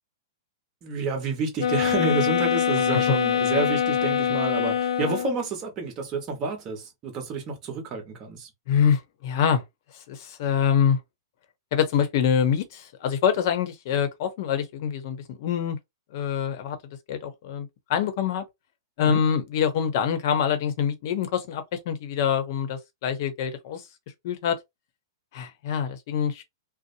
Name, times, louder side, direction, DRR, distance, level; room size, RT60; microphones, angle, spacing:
voice 1, 0.8-8.5 19.1-19.2, right 4 dB, 30° right, 1.1 m, -29 dB
sound 1, 1.6-5.5, left 9 dB, 85° left, 0.5 m, -24 dB
voice 2, 8.7-9.6 10.1-11.0 11.7-15.8 16.1-16.8 17.1-18.4 19.0-23.8 24.2-24.6 25.3-26.4, left 8 dB, 55° left, 0.8 m, -25 dB
2.7 x 2.0 x 2.6 m
hypercardioid pair, 145°, 2 cm